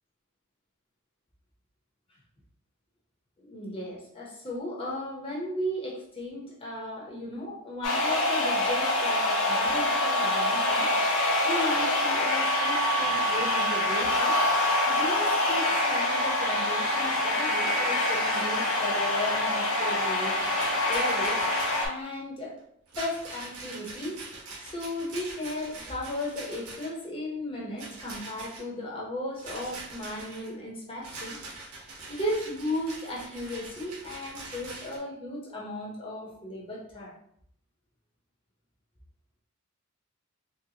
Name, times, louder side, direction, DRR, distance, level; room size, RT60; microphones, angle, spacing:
voice 1, 3.4-10.9 11.4-14.3 14.9-20.4 20.9-21.4 21.8-22.6 23.0-24.2 24.6-31.4 32.1-37.2, left 1 dB, 25° left, -4 dB, 0.7 m, -35 dB
sound 1, 7.8-21.9, left 1 dB, 70° left, 0.8 m, -25 dB
Rattle, 20.4-21.9 22.9-27.1 27.8-28.7 29.4-30.5 31.0-35.0, right 3 dB, 80° right, 0.9 m, -43 dB
4.1 x 2.1 x 2.7 m, 0.68 s
head